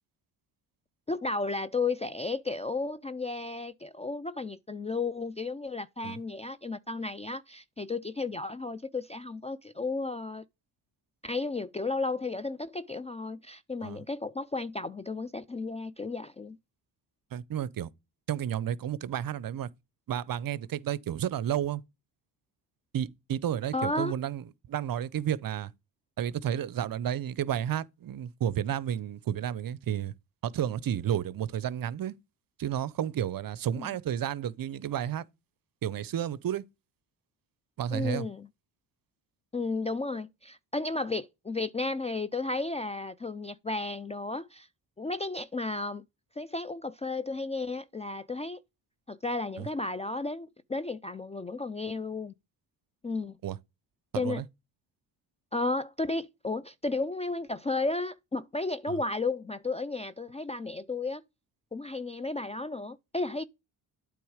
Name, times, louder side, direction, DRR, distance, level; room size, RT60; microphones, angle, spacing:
voice 1, 1.1-10.4 11.2-16.6 23.7-24.1 33.7-33.9 37.9-38.5 39.5-44.7 45.0-46.0 46.4-48.6 49.1-52.3 53.0-53.4 54.2-54.4 55.5-61.2 61.7-63.4, left 3 dB, 15° left, 0.3 m, -33 dB
voice 2, 17.3-17.9 18.3-19.7 20.1-21.8 22.9-25.7 26.2-30.1 30.4-32.1 32.6-35.3 35.8-36.6 37.8-38.3 49.6-49.7 53.4-53.6 54.1-54.4 58.9-59.0, right 10 dB, 50° right, 0.6 m, -31 dB
8.5 x 3.6 x 4.9 m
cardioid pair, 70°, 46 cm